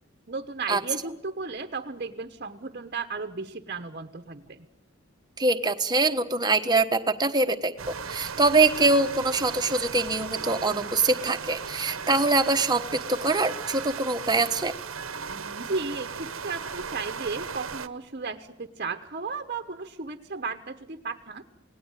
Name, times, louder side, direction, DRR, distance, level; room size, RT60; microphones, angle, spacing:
voice 1, 0.3-4.7 15.3-21.4, right 4 dB, 45° right, 7 dB, 1.1 m, -35 dB
voice 2, 5.4-12.8 13.1-14.7, right 3 dB, 20° right, 7 dB, 1.2 m, -24 dB
sound 1, 7.8-17.9, right 6 dB, 75° right, 1.1 m, -36 dB
28.0 x 18.5 x 9.1 m, 0.86 s
head